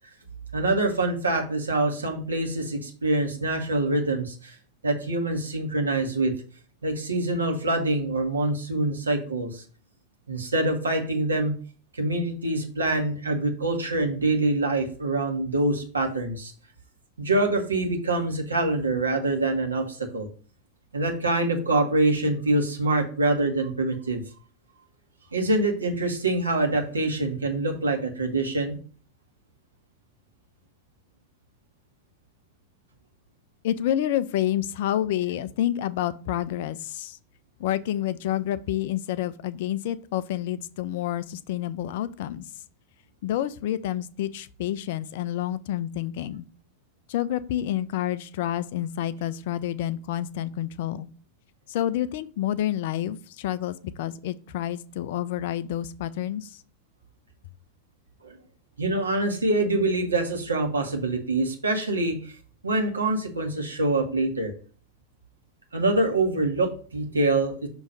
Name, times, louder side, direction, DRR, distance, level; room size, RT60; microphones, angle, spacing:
voice 1, 0.5-4.5 4.8-6.3 6.8-9.6 10.3-11.6 11.9-16.5 17.2-20.3 20.9-24.2 25.3-28.7 58.2-58.3 58.8-62.2 62.6-64.5 65.7-67.7, right 2 dB, 75° right, 2 dB, 1.4 m, -25 dB
voice 2, 33.6-37.2 37.6-42.4 43.2-46.4 47.1-51.1 51.7-56.6, left 12 dB, 50° left, 16 dB, 0.4 m, -28 dB
6.2 x 3.0 x 5.2 m, 0.40 s
figure-of-eight pair, 90°, 0 cm